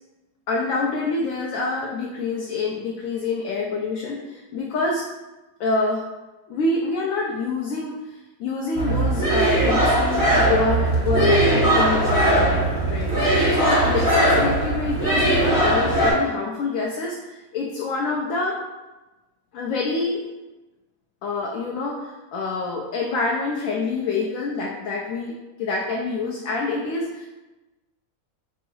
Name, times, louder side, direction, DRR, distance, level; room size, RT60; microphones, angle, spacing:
voice 1, 0.5-5.0 5.6-6.0 6.5-8.0 8.4-18.6 19.5-20.2 21.2-25.3 25.6-27.3, left 3 dB, 75° left, -2 dB, 1.0 m, -26 dB
sound 1, 8.8-16.1, right 1 dB, 15° right, 1.0 m, -19 dB
4.5 x 2.0 x 4.6 m, 1.1 s
omnidirectional pair, 1.5 m